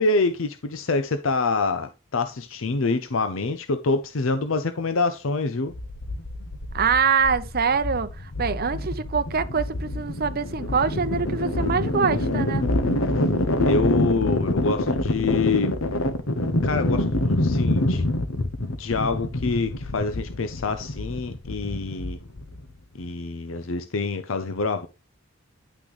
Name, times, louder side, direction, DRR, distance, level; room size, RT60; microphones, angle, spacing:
voice 1, 0.0-5.7 13.6-15.7 16.6-18.0 18.8-22.2 22.9-24.9, left 3 dB, 70° left, 0.7 m, -26 dB
sound 1, 5.7-22.7, left 1 dB, 85° left, 1.2 m, -26 dB
voice 2, 6.7-12.6, right 6 dB, 50° right, 0.7 m, -24 dB
10.0 x 6.1 x 3.2 m
head